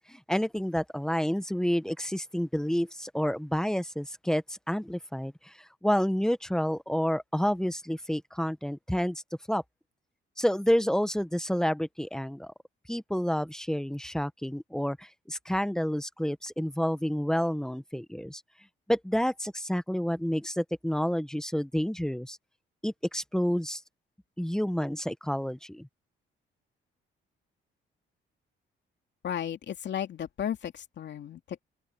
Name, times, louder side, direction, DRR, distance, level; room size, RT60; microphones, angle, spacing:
voice 1, 0.1-5.5 5.8-9.2 9.5-9.6 10.4-12.5 12.9-18.4 18.9-22.4 22.8-23.8 24.4-25.9, equal, 5° left, 1.1 m, -29 dB
voice 2, 29.2-31.6, left 9 dB, 65° left, 2.8 m, -34 dB
open air
cardioid pair, 90°, 20 cm